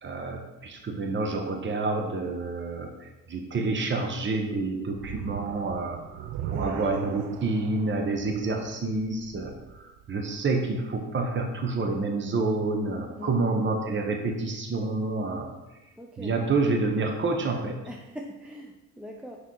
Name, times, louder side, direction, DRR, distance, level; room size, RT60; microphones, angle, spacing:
voice 1, 0.0-9.5 9.8-15.5 16.2-17.8, right 3 dB, 40° right, 2 dB, 1.1 m, -28 dB
sound 1, 4.9-10.2, right 11 dB, 80° right, 0.5 m, -39 dB
voice 2, 6.4-6.9 8.2-8.3 13.2-13.4 16.0-16.3 17.9-19.4, left 1 dB, 5° right, 0 dB, 0.7 m, -41 dB
6.0 x 5.7 x 4.7 m, 1.1 s
cardioid pair, 90°, 30 cm